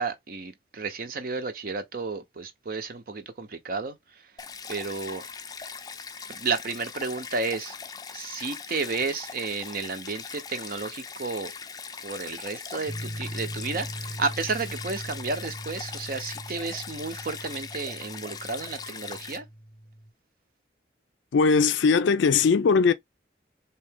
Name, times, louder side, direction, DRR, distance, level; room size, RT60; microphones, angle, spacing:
voice 1, 0.0-4.2 4.7-5.2 6.3-7.7 8.1-11.5 12.0-19.4, right 4 dB, 50° right, 0.6 m, -32 dB
Stream, 4.4-19.4, left 5 dB, 20° left, 0.4 m, -40 dB
sound 1, 12.9-20.1, equal, 5° left, 0.8 m, -40 dB
voice 2, 21.3-22.9, left 5 dB, 85° left, 0.4 m, -20 dB
3.7 x 2.8 x 3.5 m
head